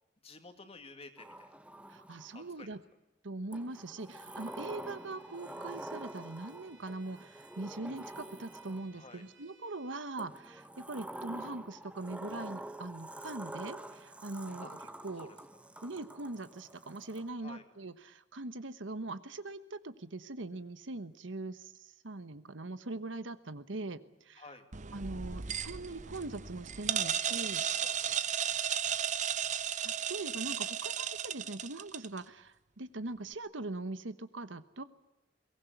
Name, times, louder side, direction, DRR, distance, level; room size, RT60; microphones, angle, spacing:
voice 1, 0.2-1.5 2.3-2.8 8.9-9.2 14.6-14.7 15.2-15.4 17.4-17.6 24.4-24.7 26.9-27.5 27.8-28.2, left 3 dB, 35° left, 7 dB, 2.4 m, -52 dB
Sliding door, 1.2-2.5 3.5-9.1 10.2-17.3, right 1 dB, 5° right, 1.0 m, -47 dB
voice 2, 1.9-2.8 3.2-14.8 15.0-15.3 15.8-24.4 24.9-27.6 29.8-34.8, right 2 dB, 90° right, 13 dB, 1.2 m, -42 dB
Bowed string instrument, 4.2-10.0, right 3 dB, 75° right, 3.1 m, -63 dB
sound 1, 24.7-32.2, right 8 dB, 40° right, 0.8 m, -35 dB
22.5 x 18.5 x 9.3 m, 0.96 s
head